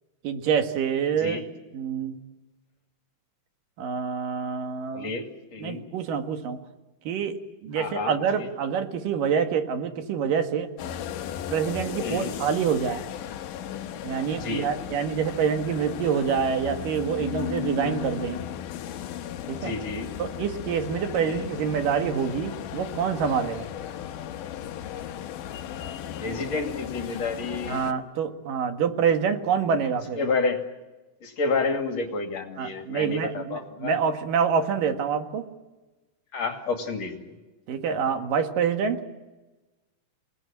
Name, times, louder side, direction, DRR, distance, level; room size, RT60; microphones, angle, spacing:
voice 1, 0.2-1.4 1.7-2.2 3.8-5.1 5.6-6.6 7.1-10.7 11.5-13.0 14.0-18.4 19.5-19.7 20.2-23.7 27.7-30.2 32.6-35.5 37.7-39.0, right 7 dB, 90° right, 7 dB, 3.4 m, -26 dB
voice 2, 4.9-5.9 7.8-8.5 12.0-12.4 14.3-14.7 19.6-20.1 21.2-21.5 26.2-27.9 30.2-30.6 31.2-33.9 36.3-37.3, left 4 dB, 55° left, 5 dB, 3.5 m, -30 dB
sound 1, 10.8-27.9, left 10 dB, 80° left, 2.6 m, -36 dB
28.0 x 19.0 x 8.8 m, 1.1 s
omnidirectional pair, 3.7 m